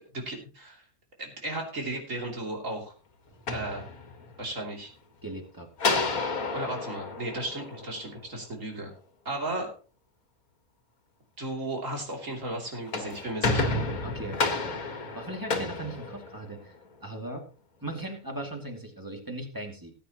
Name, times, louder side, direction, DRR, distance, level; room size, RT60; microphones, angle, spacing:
voice 1, 0.1-0.8 1.2-2.9 3.5-3.8 4.4-4.9 6.5-8.9 9.3-9.7 11.4-13.8, right 1 dB, 65° right, 1 dB, 3.5 m, -35 dB
sound 1, 3.3-4.5 5.8-8.3 12.7-16.8, left 3 dB, 85° left, 2.2 m, -31 dB
voice 2, 5.2-5.7 14.0-14.8 15.1-17.4 17.8-19.9, right 1 dB, 15° right, 2 dB, 2.4 m, -38 dB
19.0 x 9.1 x 3.0 m, 0.35 s
omnidirectional pair, 1.5 m